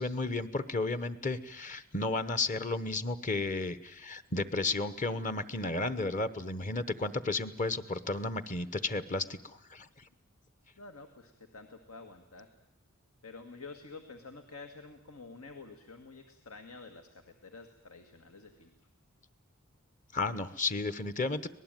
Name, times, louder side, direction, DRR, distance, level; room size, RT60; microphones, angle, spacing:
voice 1, 0.0-9.9 20.1-21.5, left 3 dB, 35° left, 13 dB, 1.0 m, -33 dB
voice 2, 10.8-12.5 13.2-18.7, left 3 dB, 85° left, 6 dB, 1.9 m, -49 dB
25.0 x 19.0 x 9.1 m, 0.82 s
head